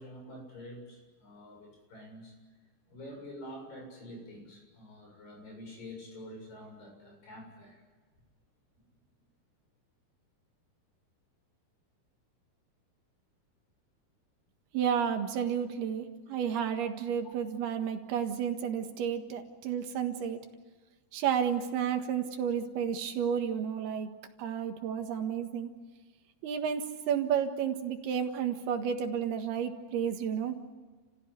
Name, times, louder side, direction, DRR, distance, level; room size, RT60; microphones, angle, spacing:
voice 1, 0.0-2.3 2.9-7.8, left 1 dB, 60° left, 1 dB, 8.9 m, -47 dB
voice 2, 14.7-20.4 21.1-24.1 24.4-25.7 26.4-30.6, right 8 dB, 80° right, 6 dB, 3.5 m, -31 dB
30.0 x 15.5 x 9.6 m, 1.4 s
omnidirectional pair, 4.6 m